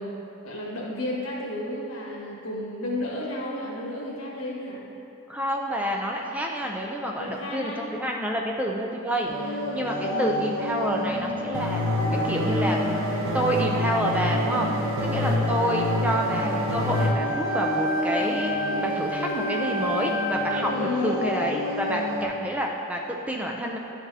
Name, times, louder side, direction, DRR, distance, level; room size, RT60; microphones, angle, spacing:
voice 1, 0.0-4.9 7.2-7.9 10.1-10.4 15.1-15.5 20.7-21.3, left 1 dB, 80° left, -3 dB, 1.6 m, -32 dB
voice 2, 5.3-11.8 12.1-12.8 13.3-14.7 15.0-23.8, equal, 5° right, 0 dB, 0.4 m, -28 dB
sound 1, 9.2-22.2, left 1 dB, 40° right, 1.3 m, -30 dB
sound 2, 11.5-17.1, left 1 dB, 70° right, 0.7 m, -27 dB
Wind instrument woodwind instrument, 16.9-20.7, right 1 dB, 45° left, 1.2 m, -31 dB
11.0 x 6.0 x 2.7 m, 2.9 s
head